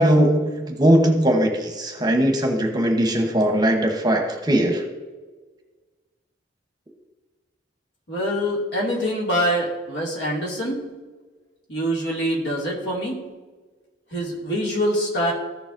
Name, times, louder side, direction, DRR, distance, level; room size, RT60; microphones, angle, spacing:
voice 1, 0.0-4.9, right 1 dB, 20° right, 4 dB, 1.0 m, -19 dB
voice 2, 8.1-10.8 11.7-13.2 14.1-15.3, equal, 65° left, -2 dB, 2.4 m, -24 dB
14.5 x 6.9 x 2.6 m, 1.3 s
head